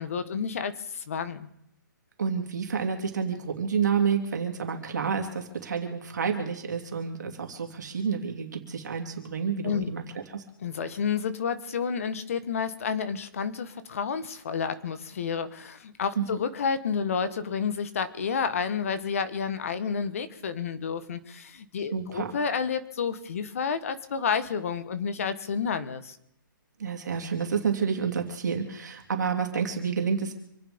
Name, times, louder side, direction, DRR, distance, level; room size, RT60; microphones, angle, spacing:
voice 1, 0.0-1.5 9.6-9.9 10.6-26.2, left 6 dB, 40° left, 12 dB, 1.4 m, -30 dB
voice 2, 2.2-10.0 10.3-10.4 16.2-16.3 21.9-22.3 26.8-30.3, right 6 dB, 55° right, 3 dB, 2.9 m, -29 dB
27.0 x 9.4 x 5.3 m, 0.75 s
hypercardioid pair, 170°, 11 cm